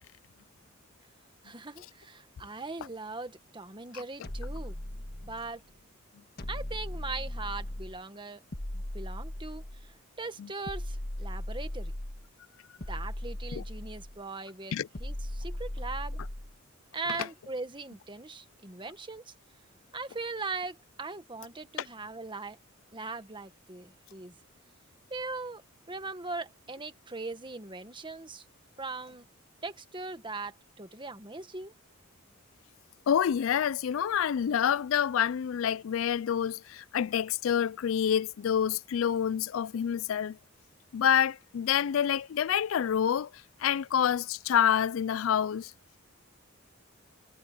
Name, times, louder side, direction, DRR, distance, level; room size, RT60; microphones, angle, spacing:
voice 1, 1.4-4.8 5.2-5.6 6.5-8.4 8.7-11.9 12.9-16.2 16.9-19.3 19.9-22.6 22.9-24.3 25.1-25.6 25.9-28.4 28.8-29.2 29.6-31.7, right 3 dB, 25° right, 1.6 m, -40 dB
sound 1, 4.2-5.6 6.4-8.0 8.5-9.9 10.7-12.3 12.8-14.2 14.9-16.6, left 1 dB, 50° left, 1.7 m, -38 dB
voice 2, 33.1-40.4 40.9-43.3 43.6-45.7, left 8 dB, 70° left, 0.4 m, -27 dB
head